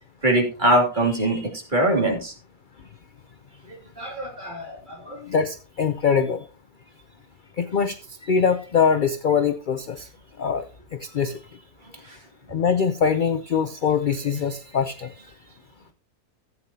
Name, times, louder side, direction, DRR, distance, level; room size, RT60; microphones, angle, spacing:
voice 1, 0.2-2.3 4.0-5.2, right 1 dB, 30° right, 0 dB, 2.6 m, -23 dB
voice 2, 5.2-6.4 7.6-8.0 8.2-10.1 10.4-10.7 10.9-11.4 11.9-12.0 12.5-15.1, left 6 dB, 60° left, 9 dB, 0.5 m, -23 dB
14.5 x 8.6 x 2.8 m, 0.35 s
omnidirectional pair, 1.6 m